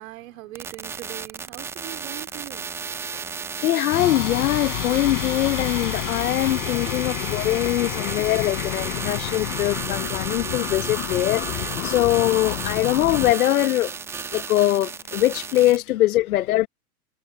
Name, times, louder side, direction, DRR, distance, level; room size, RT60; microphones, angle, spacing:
voice 1, 0.0-2.7 15.7-15.8, right 18 dB, 60° right, 4.1 m, -41 dB
sound 1, 0.5-15.8, right 6 dB, 5° right, 0.3 m, -33 dB
voice 2, 3.6-13.9 14.3-16.7, left 15 dB, 70° left, 1.2 m, -22 dB
sound 2, 3.9-13.3, left 40 dB or more, 50° left, 5.3 m, -30 dB
sound 3, 6.4-13.4, left 6 dB, 15° left, 2.6 m, -41 dB
hypercardioid pair, 105°, 45 cm